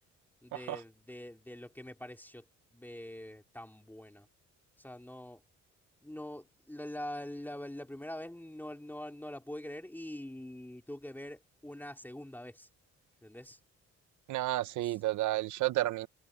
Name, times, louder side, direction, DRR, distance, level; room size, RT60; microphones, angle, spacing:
voice 1, 0.4-2.5 2.7-4.3 4.8-5.4 6.0-12.7 13.2-13.6, left 1 dB, 5° left, 3.1 m, -44 dB
voice 2, 14.3-16.1, right 16 dB, 75° right, 0.8 m, -31 dB
cardioid pair, 90°, 30 cm